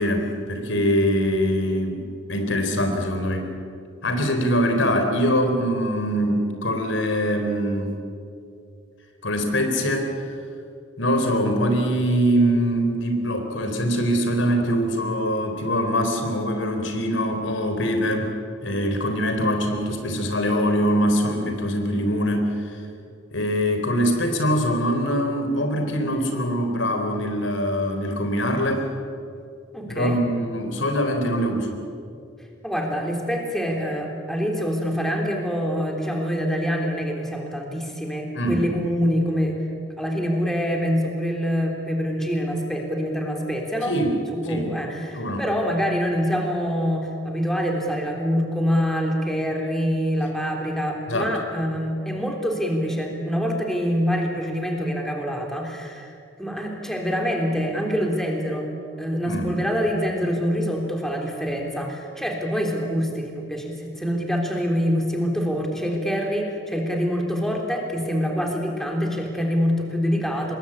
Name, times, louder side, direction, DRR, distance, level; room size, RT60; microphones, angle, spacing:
voice 1, 0.0-3.5 4.0-7.9 9.2-10.1 11.0-18.3 18.6-22.8 23.3-28.9 29.9-31.8 38.4-38.7 43.9-44.1 44.4-44.7 45.2-45.5 51.1-51.3 59.3-59.6, equal, 85° left, 4 dB, 3.7 m, -23 dB
voice 2, 29.7-30.2 32.6-39.6 40.0-43.9 44.3-56.1 56.4-58.7 59.0-70.5, equal, ahead, 0 dB, 3.3 m, -25 dB
26.0 x 21.0 x 8.6 m, 2.5 s
head